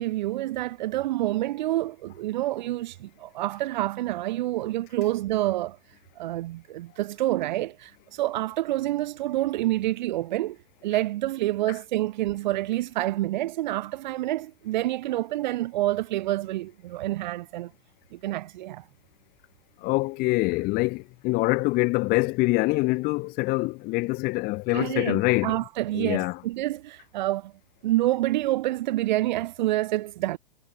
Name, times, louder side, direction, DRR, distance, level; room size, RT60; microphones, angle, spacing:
voice 1, 0.0-5.8 6.2-10.6 10.8-17.7 18.1-18.8 24.7-27.5 27.8-30.4, right 15 dB, 50° right, 1.7 m, -28 dB
voice 2, 19.8-25.6 25.9-26.4, left 23 dB, 30° left, 1.3 m, -25 dB
figure-of-eight pair, 110°, 29 cm